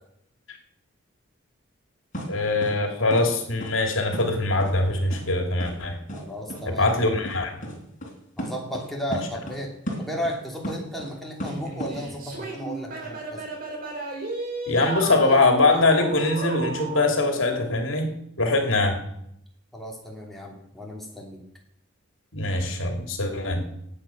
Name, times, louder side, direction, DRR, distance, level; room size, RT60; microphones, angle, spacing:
sound 1, 2.1-2.3 2.6-2.7 3.1-3.2 3.6-3.7 4.1-4.3 4.6-4.7 5.1-5.2 5.6-5.7 6.1-6.2 6.5-6.6 6.9-7.0 7.3-7.4 7.6-7.7 8.0-8.1 8.4-8.9 9.1-9.6 9.9-11.1 11.4-11.9, equal, 40° left, 3.9 m, -33 dB
voice 1, 2.3-6.0 6.7-7.6 14.7-18.1 18.4-19.0 22.3-23.7, left 2 dB, 75° left, 4 dB, 2.6 m, -22 dB
voice 2, 6.1-6.9 8.4-9.7 10.0-13.5 19.7-21.4, equal, ahead, -2 dB, 2.9 m, -34 dB
sound 2, 11.4-17.1, right 2 dB, 45° right, 4.2 m, -33 dB
18.0 x 8.8 x 5.9 m, 0.74 s
head